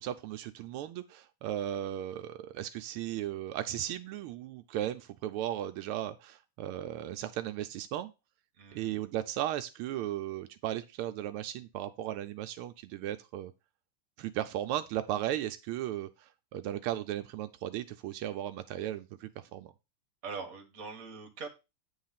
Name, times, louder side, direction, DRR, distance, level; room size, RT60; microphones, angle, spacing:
voice 1, 0.0-8.1 8.7-13.5 14.2-19.7, right 12 dB, 85° right, 9 dB, 1.5 m, -36 dB
voice 2, 8.5-9.0 20.2-21.5, right 5 dB, 45° right, 5 dB, 1.6 m, -42 dB
8.8 x 3.2 x 5.6 m, 0.27 s
omnidirectional pair, 2.4 m